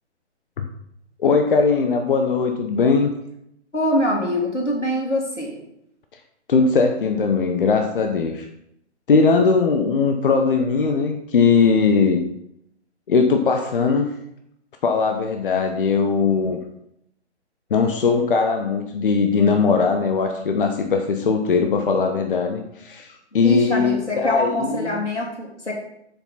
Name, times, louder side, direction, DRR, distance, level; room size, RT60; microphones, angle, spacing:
voice 1, 1.2-3.1 6.5-8.5 9.1-12.2 13.1-14.1 14.8-16.6 17.7-25.0, left 5 dB, 50° left, 5 dB, 0.9 m, -19 dB
voice 2, 3.7-5.6 23.3-25.7, equal, 90° left, -1 dB, 2.8 m, -24 dB
7.5 x 6.6 x 4.1 m, 0.77 s
figure-of-eight pair, 130°, 34 cm